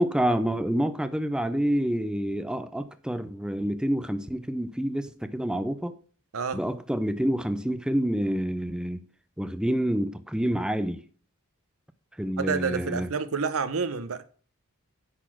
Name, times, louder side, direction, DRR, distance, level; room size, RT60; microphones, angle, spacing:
voice 1, 0.0-5.9 6.5-9.0 9.4-11.0 12.2-13.1, equal, 5° right, 0.4 m, -27 dB
voice 2, 12.4-14.2, right 5 dB, 70° right, 0.8 m, -29 dB
10.0 x 4.2 x 6.1 m
head